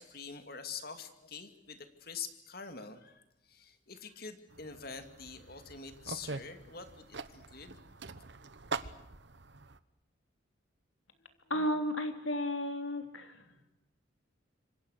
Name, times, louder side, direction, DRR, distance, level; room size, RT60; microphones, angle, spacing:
voice 1, 0.0-7.8, left 5 dB, 50° left, 8 dB, 2.5 m, -46 dB
sound 1, 4.5-9.8, right 4 dB, 65° right, 1.1 m, -44 dB
voice 2, 11.5-13.5, left 1 dB, 85° left, 7 dB, 3.2 m, -33 dB
27.0 x 24.0 x 6.6 m, 0.90 s
head